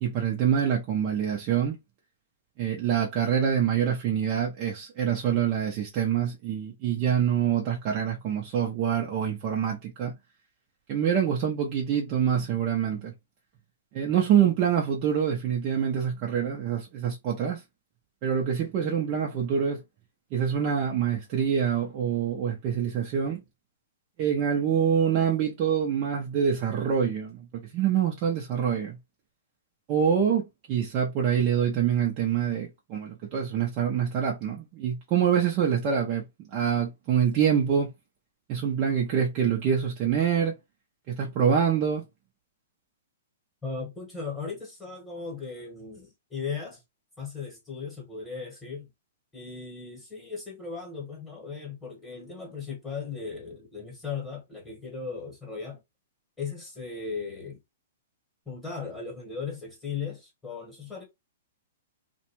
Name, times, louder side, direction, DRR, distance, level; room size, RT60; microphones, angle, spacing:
voice 1, 0.0-1.8 2.6-10.1 10.9-13.1 13.9-17.6 18.2-19.8 20.3-23.4 24.2-29.0 29.9-36.2 36.5-37.9 38.5-40.5 41.1-42.0, right 8 dB, 40° right, 0.6 m, -25 dB
voice 2, 43.6-46.8 47.2-48.9 49.3-55.8 56.4-57.6 58.5-61.0, left 5 dB, 10° left, 1.1 m, -37 dB
2.4 x 2.2 x 2.9 m
hypercardioid pair, 130°, 0 cm